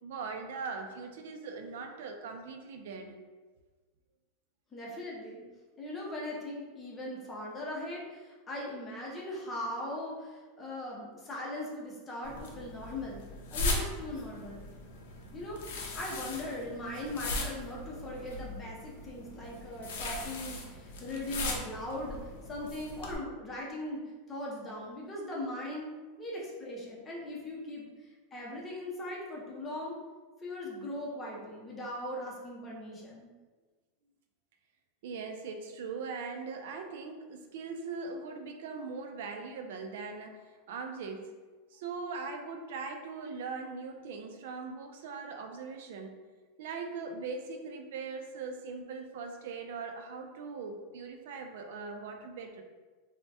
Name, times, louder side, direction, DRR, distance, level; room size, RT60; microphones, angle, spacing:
voice 1, 0.0-3.2 35.0-41.3 41.7-46.2 46.6-52.6, right 4 dB, 70° right, 4 dB, 0.3 m, -40 dB
voice 2, 4.7-5.4 5.8-13.2 13.5-14.6 15.3-15.6 15.9-25.9 26.2-30.0 30.4-33.3, left 1 dB, 15° left, -3 dB, 0.6 m, -39 dB
sound 1, 12.2-23.1, left 2 dB, 80° left, 0.6 m, -39 dB
2.8 x 2.1 x 3.3 m, 1.3 s
supercardioid pair, 165°, 0 cm